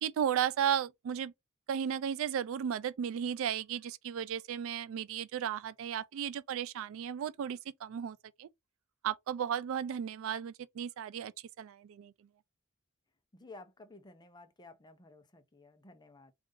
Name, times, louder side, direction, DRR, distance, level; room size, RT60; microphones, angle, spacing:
voice 1, 0.0-1.3 1.7-8.5 9.0-11.3 11.6-12.1, right 8 dB, 70° right, 0.3 m, -34 dB
voice 2, 13.3-16.3, left 2 dB, 20° left, 0.6 m, -54 dB
3.8 x 2.5 x 3.7 m
head